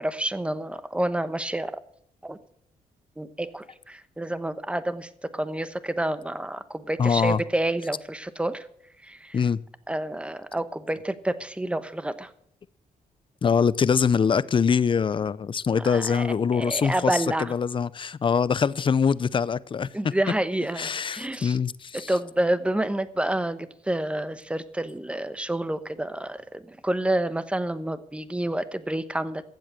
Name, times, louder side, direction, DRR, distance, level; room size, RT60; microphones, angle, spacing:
voice 1, 0.0-1.8 2.2-2.4 3.2-8.7 9.0-9.4 9.9-12.3 15.8-16.3 16.5-17.5 19.9-21.6 21.9-29.4, right 1 dB, 5° right, 1.0 m, -29 dB
voice 2, 7.0-7.4 9.3-9.6 13.4-19.9 20.8-22.1, left 6 dB, 35° left, 0.5 m, -23 dB
15.0 x 7.9 x 7.6 m
cardioid pair, 90°, 15 cm